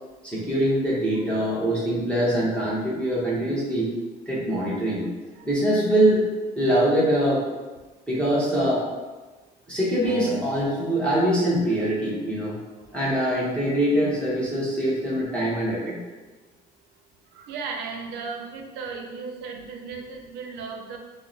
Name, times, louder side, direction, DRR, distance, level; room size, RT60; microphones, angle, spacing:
voice 1, 0.2-3.9 4.3-5.1 5.4-6.3 6.6-7.4 8.1-8.8 9.7-12.5 12.9-16.0, right 1 dB, 5° left, -7 dB, 0.9 m, -23 dB
Acoustic guitar, 10.0-13.3, right 1 dB, 80° left, 0.8 m, -41 dB
voice 2, 17.3-21.0, right 5 dB, 90° right, 2 dB, 0.5 m, -35 dB
2.8 x 2.0 x 3.8 m, 1.2 s
cardioid pair, 110°, 17 cm